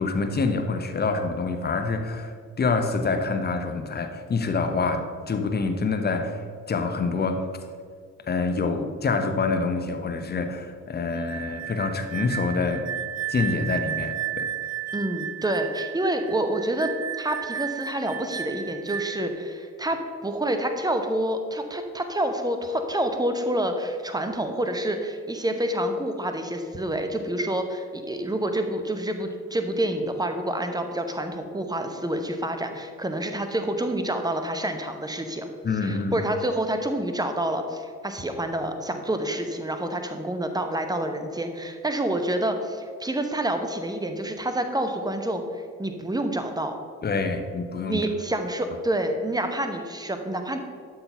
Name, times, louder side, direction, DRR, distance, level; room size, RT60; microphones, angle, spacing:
voice 1, 0.0-6.4 6.7-7.5 8.3-12.9 13.3-14.5 35.6-36.2 47.0-48.1, left 4 dB, 25° left, 7 dB, 1.0 m, -26 dB
sound 1, 11.1-19.3, right 9 dB, 40° right, 1.0 m, -33 dB
voice 2, 14.9-16.9 17.2-35.5 35.8-46.7 47.9-50.6, right 1 dB, 10° right, 6 dB, 1.0 m, -28 dB
12.0 x 4.1 x 5.8 m, 2.1 s
figure-of-eight pair, 50°, 41 cm